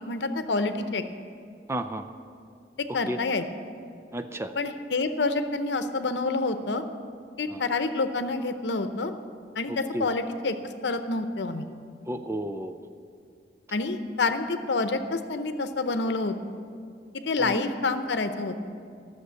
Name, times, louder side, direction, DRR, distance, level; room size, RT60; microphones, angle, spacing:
voice 1, 0.1-1.0 2.9-3.4 4.6-6.8 7.4-9.1 9.6-10.6 10.8-11.7 13.7-16.4 17.3-18.6, left 3 dB, 85° left, 9 dB, 0.8 m, -28 dB
voice 2, 1.7-2.0 2.9-3.2 4.1-4.5 7.5-7.6 9.7-10.1 12.0-12.8 17.4-17.6, right 1 dB, 15° right, 8 dB, 0.4 m, -32 dB
14.0 x 6.6 x 8.2 m, 2.3 s
head